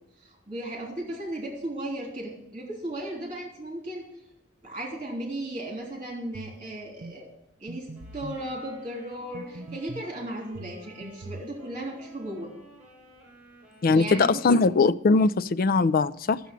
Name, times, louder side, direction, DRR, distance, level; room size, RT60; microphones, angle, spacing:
voice 1, 0.2-4.1 4.6-7.3 7.6-7.9 8.1-12.5 13.9-14.6, right 1 dB, 25° right, 3.1 m, -35 dB
sound 1, 6.3-6.6 7.0-7.2 7.7-8.4 9.3-10.1 10.5-11.5, right 2 dB, 65° right, 0.6 m, -41 dB
sound 2, 7.9-14.5, equal, 5° right, 6.2 m, -52 dB
voice 2, 13.8-16.4, left 4 dB, 45° left, 0.4 m, -21 dB
13.0 x 7.0 x 7.3 m
head